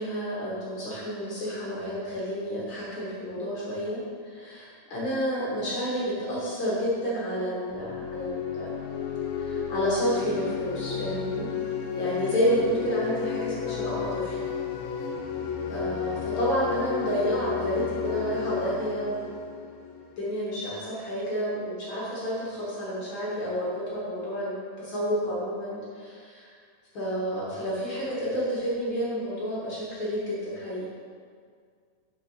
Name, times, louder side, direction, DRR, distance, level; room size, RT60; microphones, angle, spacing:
voice 1, 0.0-8.8 9.4-11.5 12.0-14.4 15.7-19.3 20.2-26.5 26.9-30.8, equal, 50° left, -6 dB, 1.6 m, -30 dB
sound 1, 7.7-20.4, left 7 dB, 75° left, 1.9 m, -32 dB
6.5 x 6.0 x 5.7 m, 2.1 s
omnidirectional pair, 4.2 m